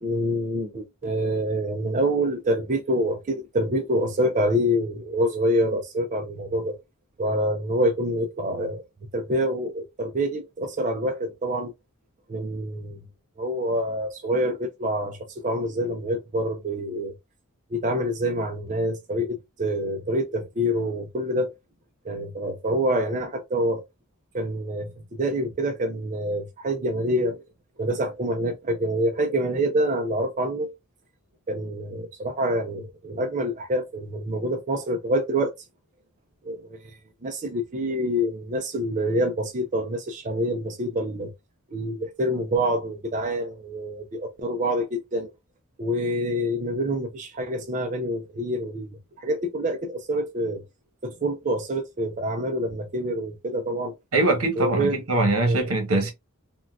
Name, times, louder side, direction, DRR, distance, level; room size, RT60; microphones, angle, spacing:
voice 1, 0.0-6.8 7.2-8.8 9.1-11.7 12.3-13.0 13.4-17.1 17.7-21.5 22.0-23.8 24.3-27.4 27.8-30.7 31.5-35.5 36.4-41.3 41.7-45.3 45.8-50.6 51.0-53.9 54.6-55.0 55.5-55.7, equal, 35° right, 0.4 m, -26 dB
voice 2, 54.1-56.1, right 2 dB, 80° right, 1.1 m, -22 dB
3.7 x 2.2 x 2.3 m
head